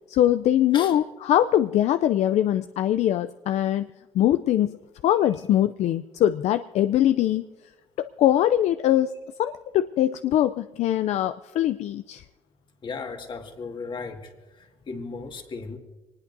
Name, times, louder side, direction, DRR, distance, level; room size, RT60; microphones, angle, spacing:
voice 1, 0.1-3.9 4.1-4.8 5.0-7.4 8.0-9.1 9.4-12.2, left 12 dB, 65° left, 10 dB, 0.4 m, -22 dB
voice 2, 12.8-15.8, left 4 dB, 40° left, 4 dB, 1.9 m, -36 dB
23.0 x 19.5 x 2.7 m, 1.2 s
cardioid pair, 90°, 12 cm